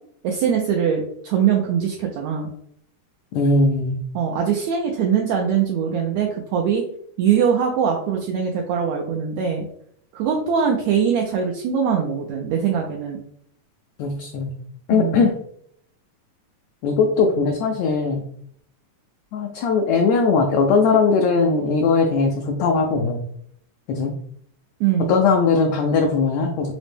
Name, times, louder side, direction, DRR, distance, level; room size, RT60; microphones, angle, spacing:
voice 1, 0.2-2.5 4.1-6.8 7.2-9.7 10.1-13.2 14.9-15.2 24.8-25.1, right 7 dB, 80° right, 0 dB, 1.6 m, -22 dB
voice 2, 3.3-4.0 14.0-14.5 14.9-15.3 16.8-18.2 19.3-23.2 23.9-24.1 25.1-26.7, left 4 dB, 85° left, 2 dB, 1.6 m, -19 dB
5.0 x 2.1 x 3.3 m, 0.67 s
omnidirectional pair, 3.6 m